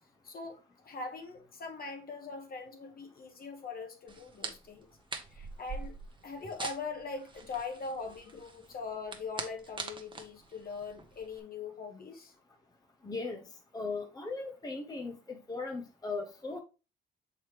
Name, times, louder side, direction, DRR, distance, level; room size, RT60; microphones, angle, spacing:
voice 1, 0.2-0.6 0.8-4.9 5.3-5.9 6.2-12.3, left 4 dB, 50° left, 1.4 m, -41 dB
sound 1, 4.1-11.4, right 4 dB, 25° right, 0.9 m, -44 dB
voice 2, 13.0-13.4 13.7-16.6, left 3 dB, 20° left, 0.7 m, -38 dB
6.3 x 4.6 x 3.3 m
cardioid pair, 90°, 20 cm